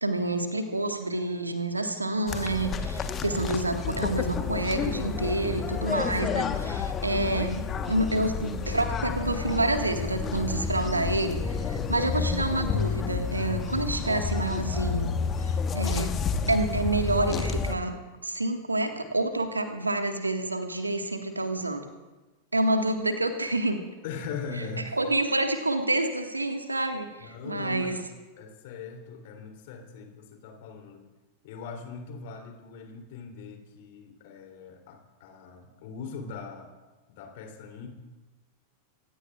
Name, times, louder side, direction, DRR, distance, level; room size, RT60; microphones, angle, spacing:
voice 1, 0.0-15.1 15.4-16.2 16.5-18.0 18.2-21.8 22.5-23.8 24.9-28.0, right 2 dB, 80° right, 6 dB, 1.6 m, -28 dB
sound 1, 2.3-17.8, left 6 dB, 25° left, 1.2 m, -30 dB
voice 2, 24.0-25.0 27.2-28.0 28.4-31.0 31.4-36.7 37.1-37.9, left 5 dB, 50° left, 3 dB, 3.1 m, -40 dB
26.5 x 16.5 x 2.4 m, 1.2 s
figure-of-eight pair, 90°, 0 cm